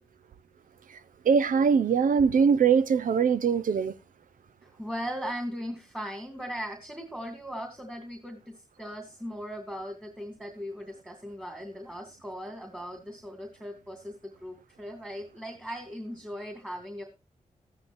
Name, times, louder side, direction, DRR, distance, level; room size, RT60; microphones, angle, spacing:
voice 1, 1.2-3.9, right 6 dB, 80° right, 0.8 m, -22 dB
voice 2, 4.6-17.0, equal, 5° right, 2.5 m, -38 dB
13.5 x 10.5 x 2.6 m
cardioid pair, 65°, 14 cm